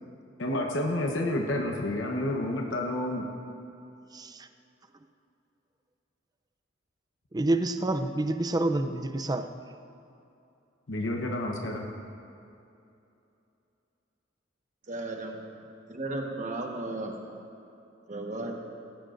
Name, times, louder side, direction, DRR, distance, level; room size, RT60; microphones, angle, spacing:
voice 1, 0.4-3.3 10.9-11.9, left 1 dB, 80° left, 1 dB, 1.0 m, -29 dB
voice 2, 4.1-4.5 7.3-9.5, right 2 dB, 20° right, 8 dB, 0.5 m, -28 dB
voice 3, 14.9-15.4 15.9-17.2 18.1-18.5, right 2 dB, 40° right, 1 dB, 1.3 m, -34 dB
17.5 x 14.5 x 2.6 m, 2.7 s
head